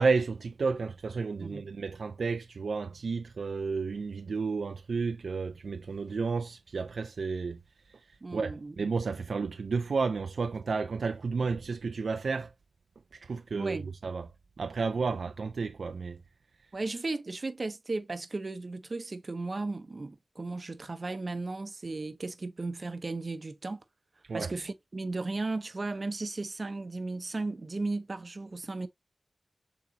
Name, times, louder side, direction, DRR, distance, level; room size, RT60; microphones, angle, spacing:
voice 1, 0.0-7.6 7.8-12.5 13.1-14.3 14.6-16.2 24.2-24.5, right 4 dB, 75° right, 0.4 m, -32 dB
voice 2, 8.2-8.7 13.6-13.9 16.7-23.8 24.3-28.9, right 3 dB, 40° right, 0.7 m, -35 dB
6.8 x 3.0 x 2.6 m
wide cardioid pair, 110°, 0 cm